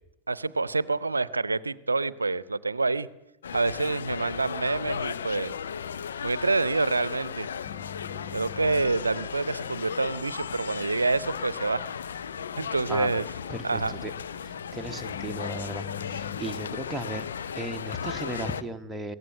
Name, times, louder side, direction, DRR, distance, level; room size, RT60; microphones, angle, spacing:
voice 1, 0.3-3.1 3.5-5.6 6.2-7.5 8.3-11.9 12.6-13.3 13.6-13.9, right 3 dB, 80° right, 19 dB, 0.7 m, -27 dB
sound 1, 3.4-18.6, left 7 dB, 65° left, 0.8 m, -35 dB
sound 2, 7.6-16.4, left 10 dB, 30° left, 0.8 m, -46 dB
voice 2, 13.5-14.1 14.4-17.3 17.5-19.2, right 1 dB, 5° right, 4 dB, 1.3 m, -36 dB
22.5 x 17.5 x 7.9 m, 0.94 s
figure-of-eight pair, 90°, 0 cm